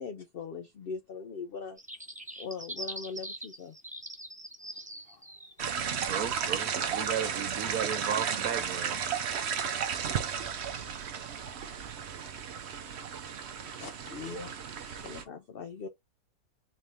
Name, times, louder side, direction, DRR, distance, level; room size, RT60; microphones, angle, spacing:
voice 1, 0.0-1.8 2.4-3.8 15.0-15.9, left 5 dB, 65° left, 0.5 m, -40 dB
sound 1, 1.8-5.8, right 1 dB, 10° right, 0.5 m, -42 dB
voice 2, 4.7-5.2 10.7-10.8 11.1-11.8 12.2-12.4 13.0-13.1 13.7-15.3, left 4 dB, 50° left, 0.9 m, -47 dB
sound 2, 5.6-15.2, right 7 dB, 60° right, 0.8 m, -34 dB
voice 3, 6.0-9.0, right 8 dB, 75° right, 1.3 m, -34 dB
4.3 x 2.7 x 3.4 m
omnidirectional pair, 1.6 m